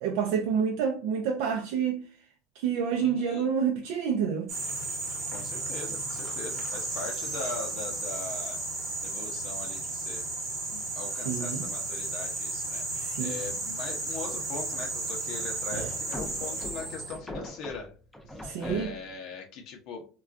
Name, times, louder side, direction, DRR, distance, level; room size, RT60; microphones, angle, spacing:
voice 1, 0.0-2.0 2.6-4.5 11.3-11.7 12.9-13.4 15.7-15.9 18.4-18.9, right 7 dB, 75° right, 0.4 m, -28 dB
voice 2, 3.0-3.6 5.3-8.6 9.0-10.3 10.7-17.9 18.3-20.1, left 4 dB, 50° left, 0.6 m, -41 dB
sound 1, 4.5-17.2, right 2 dB, 35° right, 0.9 m, -34 dB
sound 2, 15.9-19.2, left 1 dB, ahead, 0.4 m, -41 dB
3.5 x 2.2 x 2.4 m
cardioid pair, 160°, 0 cm